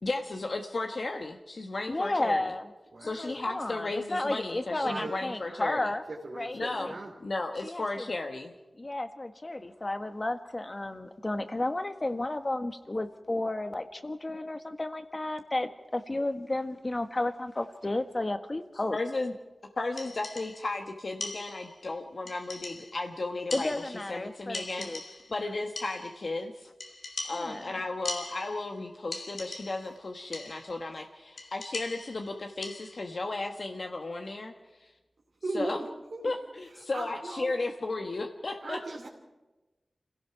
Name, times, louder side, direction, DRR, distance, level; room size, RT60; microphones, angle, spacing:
voice 1, 0.0-2.5 3.0-5.9 6.5-6.9 7.2-8.5 18.9-19.3 19.8-26.7 27.3-34.5 34.8-34.9 35.5-35.8 36.2-38.8, left 2 dB, 65° left, 3 dB, 1.3 m, -34 dB
voice 2, 1.9-2.7 3.0-6.0 6.3-6.9 7.6-7.8 8.8-19.0 23.5-25.0 27.3-27.7, left 2 dB, 35° left, 8 dB, 1.6 m, -32 dB
voice 3, 2.9-3.4 4.8-5.2 6.1-7.1 35.4-36.2 36.9-37.5 38.6-39.1, right 2 dB, 75° right, -2 dB, 2.8 m, -37 dB
sound 1, 20.0-20.8 21.2-21.9 22.3-23.1 23.5-24.2 24.5-25.4 25.8-26.3 26.8-28.8 29.1-30.0 30.3-30.8 31.4-33.1, left 2 dB, 80° left, 2.8 m, -41 dB
26.5 x 17.0 x 5.8 m, 1.1 s
cardioid pair, 50°, 0 cm